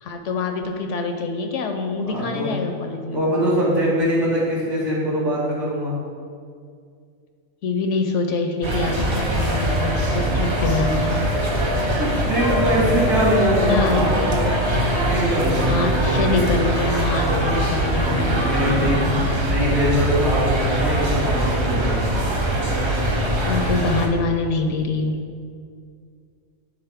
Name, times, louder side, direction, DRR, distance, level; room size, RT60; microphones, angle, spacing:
voice 1, 0.0-3.2 7.6-11.2 11.8-12.0 12.6-13.0 13.5-14.4 15.7-19.3 23.4-25.2, left 3 dB, 70° left, 5 dB, 0.8 m, -25 dB
voice 2, 2.0-2.5 3.1-5.9 12.0-14.4 14.9-16.4 17.9-19.0 19.4-22.1, equal, 60° right, -7 dB, 2.2 m, -23 dB
sound 1, 8.6-24.1, right 1 dB, 35° right, 0.5 m, -22 dB
sound 2, 9.3-15.5 17.8-17.9 18.0-18.1, left 4 dB, 85° right, 1.8 m, -31 dB
9.4 x 4.1 x 3.5 m, 2.2 s
omnidirectional pair, 1.4 m